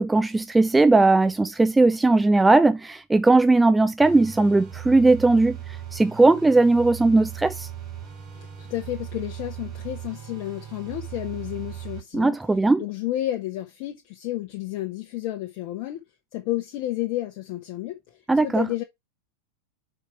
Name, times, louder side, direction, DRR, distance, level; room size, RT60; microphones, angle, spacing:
voice 1, 0.0-5.6 5.9-7.7 12.1-12.8 18.3-18.7, right 3 dB, 10° right, 0.4 m, -18 dB
sound 1, 4.0-12.0, right 10 dB, 35° right, 3.1 m, -38 dB
voice 2, 8.3-12.4 12.8-16.0 16.3-18.8, left 14 dB, 45° left, 1.1 m, -31 dB
5.7 x 4.6 x 4.7 m
figure-of-eight pair, 90°, 0 cm